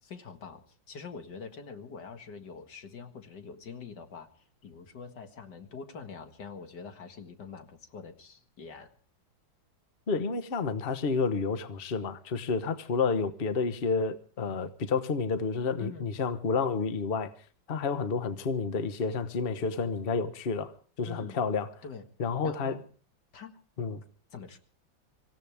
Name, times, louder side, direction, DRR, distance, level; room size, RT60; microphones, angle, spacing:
voice 1, 0.0-8.9 15.8-16.1 21.1-21.4 21.8-22.0 22.4-22.8 23.3-23.9 24.3-24.6, left 5 dB, 60° left, 2.3 m, -45 dB
voice 2, 10.1-17.3 17.7-21.7 22.2-22.8 23.8-24.0, left 5 dB, 35° left, 1.1 m, -30 dB
25.5 x 16.0 x 3.5 m
omnidirectional pair, 2.1 m